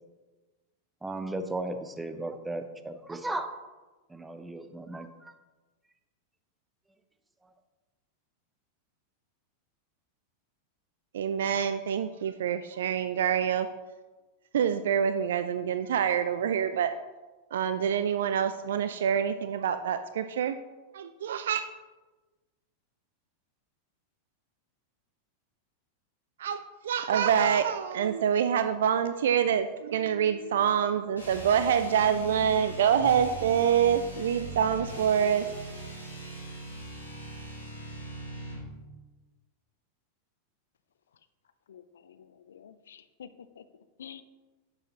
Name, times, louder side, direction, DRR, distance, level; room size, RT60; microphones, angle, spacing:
voice 1, 1.0-3.5 4.1-5.3, right 2 dB, 10° right, 8 dB, 0.7 m, -35 dB
voice 2, 11.1-13.7 14.5-16.9 17.5-20.6 20.9-21.6 26.4-35.5, right 8 dB, 60° right, 10 dB, 0.3 m, -26 dB
sound 1, 31.1-38.7, right 1 dB, 85° left, 2.3 m, -41 dB
voice 3, 41.7-43.6 44.0-44.2, left 8 dB, 65° left, 12 dB, 0.5 m, -49 dB
9.6 x 6.7 x 2.9 m, 1.2 s
figure-of-eight pair, 90°, 0 cm